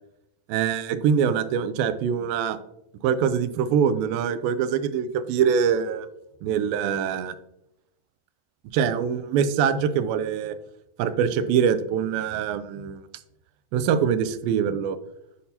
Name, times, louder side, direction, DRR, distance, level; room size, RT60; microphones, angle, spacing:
voice 1, 0.5-2.6 3.0-6.1 6.4-7.4 8.7-10.6 11.0-13.0 13.7-15.0, right 7 dB, 90° right, 12 dB, 2.3 m, -24 dB
8.3 x 5.4 x 2.8 m, 0.82 s
omnidirectional pair, 4.0 m